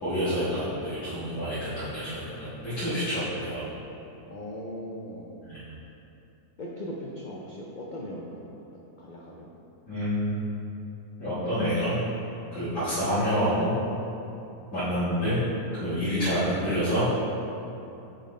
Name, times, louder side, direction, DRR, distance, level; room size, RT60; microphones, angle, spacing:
voice 1, 0.0-3.7 5.5-5.6 9.9-10.4 11.2-12.0 12.5-14.0 14.7-15.4 15.8-17.1, equal, 55° left, -15 dB, 2.0 m, -28 dB
voice 2, 4.3-5.3 6.6-8.5 9.0-9.5 12.5-12.7 15.8-16.0, equal, 80° left, -4 dB, 0.4 m, -39 dB
6.7 x 3.9 x 4.2 m, 2.9 s
omnidirectional pair, 1.6 m